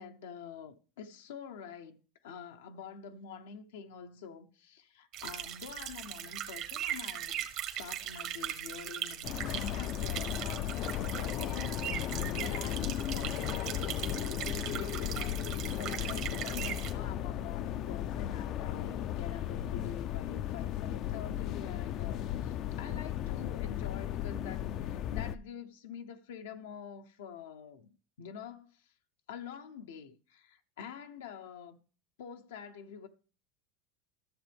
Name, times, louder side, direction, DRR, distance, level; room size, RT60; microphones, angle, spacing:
voice 1, 0.0-27.9 28.2-28.8 29.3-31.8 32.2-33.1, left 7 dB, 85° left, 0.7 m, -47 dB
sound 1, 5.1-16.9, right 11 dB, 55° right, 1.3 m, -39 dB
sound 2, 9.2-25.4, left 11 dB, 50° left, 0.4 m, -35 dB
13.5 x 6.8 x 3.4 m
supercardioid pair, 110°, 0 cm